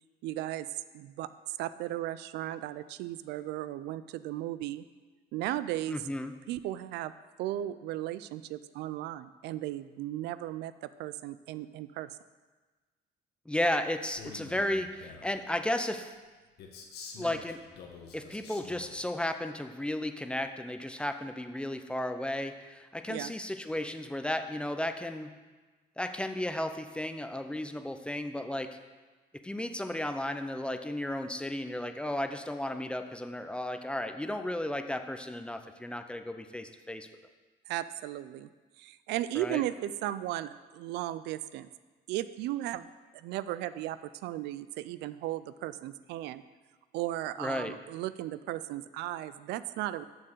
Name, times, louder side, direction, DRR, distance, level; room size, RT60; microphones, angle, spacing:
voice 1, 0.2-4.8 5.3-6.0 6.5-7.1 7.4-12.1 23.1-23.3 37.7-38.5 38.8-41.7 42.1-42.9 43.1-46.4 46.9-50.0, right 14 dB, 85° right, 14 dB, 0.4 m, -36 dB
voice 2, 5.9-6.3 13.5-16.1 17.2-17.6 18.1-25.3 26.0-28.8 29.4-37.1 39.3-39.6 47.4-47.7, left 1 dB, 5° left, 8 dB, 0.6 m, -34 dB
Male speech man speaking, 14.0-15.4 16.6-19.0, left 5 dB, 70° left, 1.4 m, -47 dB
7.1 x 6.7 x 6.6 m, 1.3 s
cardioid pair, 110°, 17 cm